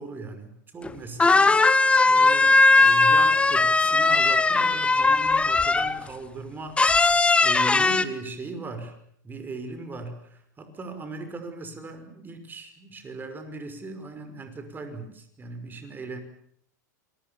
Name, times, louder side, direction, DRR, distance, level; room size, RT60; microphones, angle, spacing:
voice 1, 0.0-1.6 2.1-6.8 7.4-8.9 9.2-16.2, right 3 dB, 20° right, 7 dB, 5.8 m, -38 dB
sound 1, 0.8-0.9 1.2-6.0 6.8-8.0, left 3 dB, 10° left, 1.5 m, -19 dB
27.5 x 23.5 x 7.2 m, 0.67 s
hypercardioid pair, 100°, 10 cm